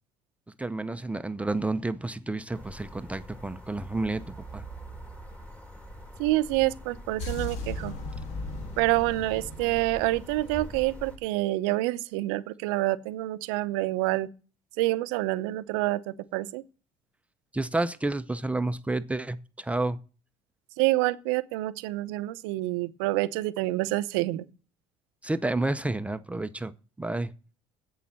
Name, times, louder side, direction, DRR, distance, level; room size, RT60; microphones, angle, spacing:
voice 1, 0.6-4.7 17.5-20.0 25.2-27.3, right 2 dB, 10° right, 0.6 m, -30 dB
sound 1, 2.5-11.2, equal, 10° left, 2.7 m, -44 dB
voice 2, 6.2-7.9 8.8-14.3 14.8-16.6 20.8-24.5, right 18 dB, 90° right, 0.6 m, -27 dB
sound 2, 7.2-11.3, left 2 dB, 65° left, 1.9 m, -38 dB
8.3 x 6.9 x 7.5 m
supercardioid pair, 90°, 13 cm